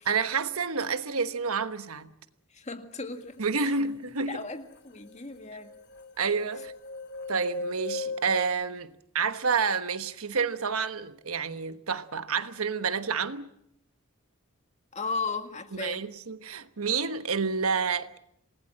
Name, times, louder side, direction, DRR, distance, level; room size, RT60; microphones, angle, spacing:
voice 1, 0.0-2.1 3.4-4.4 6.2-6.7 7.3-13.5 15.7-18.2, right 5 dB, 85° right, 1.2 m, -29 dB
voice 2, 2.5-3.8 4.3-5.7 14.9-16.1, left 4 dB, 30° left, 1.9 m, -36 dB
sound 1, 4.4-4.5 4.7-8.5, left 3 dB, 55° left, 1.7 m, -38 dB
27.5 x 19.5 x 7.7 m
head